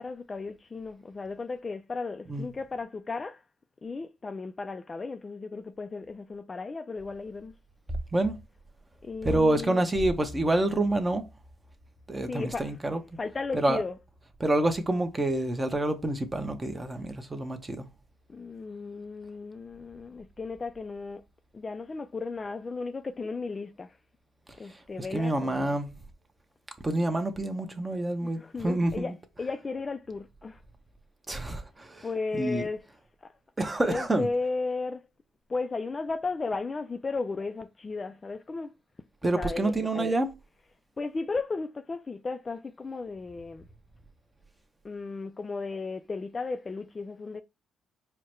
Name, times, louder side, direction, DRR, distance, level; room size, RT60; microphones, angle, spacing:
voice 1, 0.0-3.4 3.8-7.5 9.0-9.8 12.3-12.7 13.2-14.0 18.3-21.2 21.5-24.0 24.6-25.8 28.2-30.6 32.0-32.8 33.2-33.3 33.8-35.0 35.5-38.7 39.2-40.1 41.0-43.7 44.8-47.4, left 3 dB, 30° left, 0.3 m, -35 dB
voice 2, 9.2-11.2 12.1-13.0 13.5-13.8 14.4-17.9 25.1-25.9 26.8-29.1 31.3-32.1 32.3-32.6 33.6-34.3 39.2-40.3, right 1 dB, 20° right, 0.8 m, -27 dB
4.6 x 2.1 x 4.4 m
cardioid pair, 90°, 0 cm